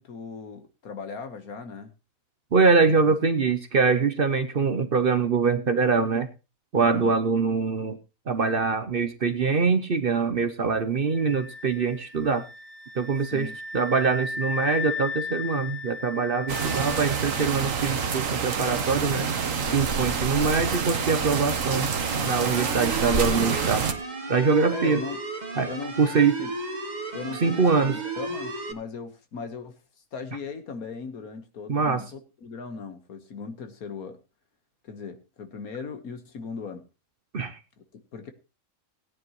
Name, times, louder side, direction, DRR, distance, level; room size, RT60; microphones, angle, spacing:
voice 1, 0.0-1.9 2.8-3.2 6.8-7.1 13.3-13.6 24.7-25.2 25.7-26.5 27.1-29.8 30.1-34.2 34.8-36.8 37.8-38.3, left 5 dB, 80° left, 7 dB, 1.9 m, -38 dB
voice 2, 2.5-6.3 6.7-8.0 8.3-12.4 13.0-13.5 13.7-19.3 19.7-23.9 24.3-25.0 25.6-25.7 26.0-26.4 27.4-28.0 31.7-32.0 37.3-37.6, right 5 dB, 45° right, 9 dB, 0.9 m, -23 dB
sound 1, 11.1-17.9, left 4 dB, 25° left, 0.7 m, -36 dB
sound 2, 16.5-23.9, right 6 dB, 65° right, 1.5 m, -27 dB
sound 3, 22.0-28.7, right 3 dB, 30° right, 1.4 m, -34 dB
17.5 x 9.8 x 3.1 m, 0.29 s
omnidirectional pair, 1.5 m